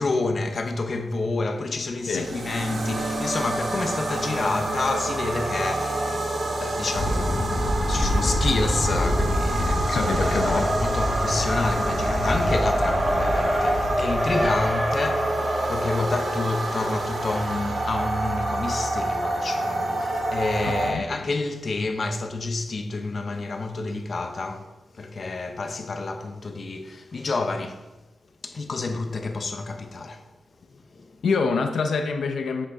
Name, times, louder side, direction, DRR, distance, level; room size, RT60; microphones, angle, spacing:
voice 1, 0.0-24.7 24.9-27.8 28.4-30.2 30.7-31.2, left 3 dB, 50° left, 0.9 m, -29 dB
sound 1, 2.0-20.9, right 2 dB, 70° right, 1.6 m, -28 dB
sound 2, 6.9-14.6, left 1 dB, 35° left, 1.4 m, -27 dB
Race car auto racing, 8.8-17.8, equal, 5° right, 1.4 m, -28 dB
voice 2, 9.9-10.7 20.7-21.1 31.2-32.7, left 4 dB, 85° left, 0.7 m, -26 dB
9.6 x 6.4 x 3.5 m
wide cardioid pair, 95°, 0 cm